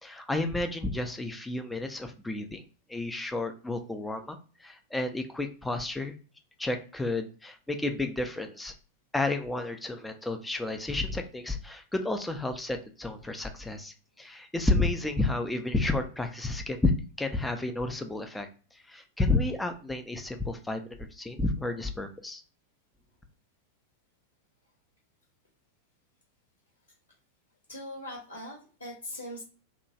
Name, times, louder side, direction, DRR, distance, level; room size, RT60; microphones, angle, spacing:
voice 1, 0.0-2.6 2.9-6.2 6.6-8.7 9.1-16.9 17.2-22.4, left 2 dB, 5° left, 6 dB, 0.5 m, -31 dB
voice 2, 27.7-29.4, left 1 dB, 80° left, -3 dB, 1.1 m, -40 dB
2.8 x 2.3 x 2.7 m, 0.36 s
figure-of-eight pair, 90°, 0 cm